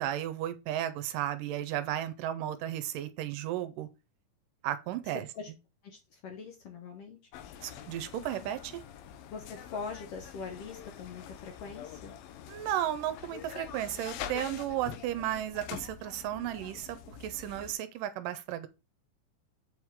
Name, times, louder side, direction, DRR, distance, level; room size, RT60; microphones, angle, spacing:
voice 1, 0.0-3.9 4.6-5.3 7.6-8.8 12.5-18.7, right 12 dB, 85° right, 2.2 m, -34 dB
voice 2, 5.8-7.2 9.3-12.1, left 5 dB, 70° left, 1.4 m, -42 dB
sound 1, 7.3-17.7, left 10 dB, 85° left, 2.5 m, -45 dB
7.7 x 4.7 x 3.6 m
omnidirectional pair, 4.0 m